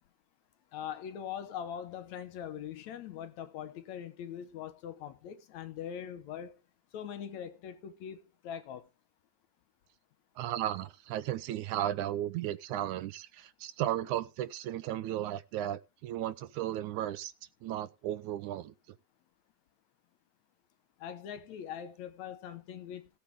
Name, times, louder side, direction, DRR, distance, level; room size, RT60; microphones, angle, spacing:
voice 1, 0.7-6.5 6.9-8.9 21.0-23.1, left 9 dB, 75° left, 2.2 m, -42 dB
voice 2, 10.4-17.3 17.6-18.7, right 12 dB, 80° right, 2.1 m, -35 dB
17.0 x 7.5 x 3.6 m
omnidirectional pair, 3.5 m